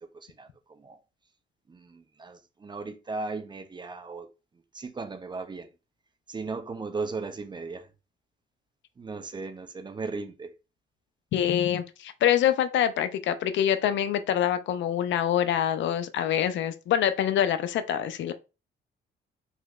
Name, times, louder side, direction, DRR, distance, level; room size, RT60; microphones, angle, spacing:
voice 1, 0.0-1.0 1.7-4.3 4.7-5.7 6.3-7.9 9.0-10.5, right 3 dB, 25° right, 0.4 m, -37 dB
voice 2, 11.3-18.3, left 10 dB, 70° left, 0.4 m, -25 dB
3.2 x 2.9 x 2.3 m
cardioid pair, 90°, 20 cm